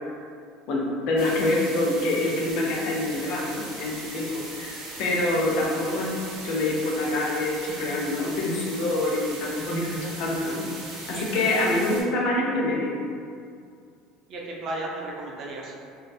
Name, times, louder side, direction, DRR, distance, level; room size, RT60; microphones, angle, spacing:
voice 1, 0.7-6.1 6.4-10.6 11.1-12.9, left 2 dB, 50° left, -2 dB, 0.4 m, -26 dB
sound 1, 1.2-12.0, right 2 dB, 80° right, 0.7 m, -39 dB
voice 2, 11.1-11.4 14.3-15.8, right 2 dB, 35° right, -2 dB, 0.4 m, -34 dB
2.3 x 2.2 x 2.6 m, 2.3 s
cardioid pair, 175°, 0 cm